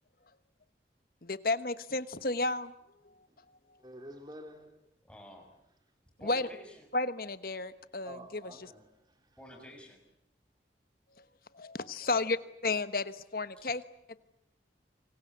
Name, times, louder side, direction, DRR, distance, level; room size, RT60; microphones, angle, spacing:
voice 1, 1.2-2.7 6.2-6.5 6.9-8.4 11.2-11.3 11.5-12.4 12.6-13.8, left 3 dB, 50° left, 1.2 m, -32 dB
voice 2, 3.8-5.0 8.0-9.4, right 1 dB, 25° right, 3.1 m, -50 dB
voice 3, 5.0-5.5 6.2-6.8 9.4-10.0 12.0-12.2, equal, 5° left, 6.5 m, -50 dB
28.5 x 24.5 x 8.1 m
head